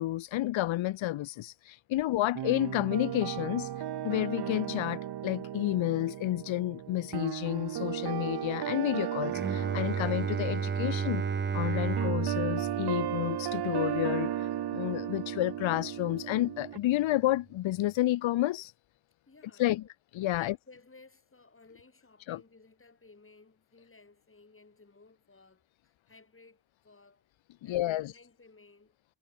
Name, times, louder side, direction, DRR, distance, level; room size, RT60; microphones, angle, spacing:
voice 1, 0.0-3.7 4.0-11.3 11.5-18.7 19.6-19.8 20.1-20.5 22.3-22.4 27.6-28.1, left 15 dB, 80° left, 0.8 m, -30 dB
voice 2, 2.0-2.4 19.3-19.9 20.4-27.3 27.6-29.0, left 3 dB, 25° left, 7.5 m, -58 dB
sound 1, 2.3-16.8, right 11 dB, 55° right, 0.9 m, -35 dB
Bowed string instrument, 9.3-15.0, right 6 dB, 25° right, 0.7 m, -33 dB
cardioid pair, 70°, 46 cm